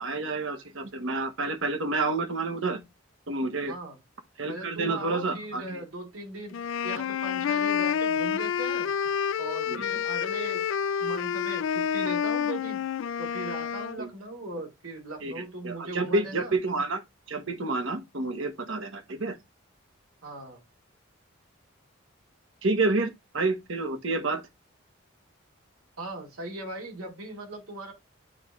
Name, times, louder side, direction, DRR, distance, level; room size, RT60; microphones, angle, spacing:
voice 1, 0.0-2.8 3.3-3.7 4.4-5.8 9.7-9.8 14.0-14.1 15.2-17.0 17.3-19.4 22.6-24.4, right 3 dB, 70° right, 1.2 m, -29 dB
voice 2, 3.7-4.0 4.5-8.9 9.4-10.6 11.0-12.8 13.2-16.5 20.2-20.6 26.0-27.9, right 1 dB, 90° right, 2.5 m, -39 dB
sound 1, 6.5-14.0, left 8 dB, 70° left, 0.3 m, -28 dB
8.9 x 3.2 x 3.6 m
head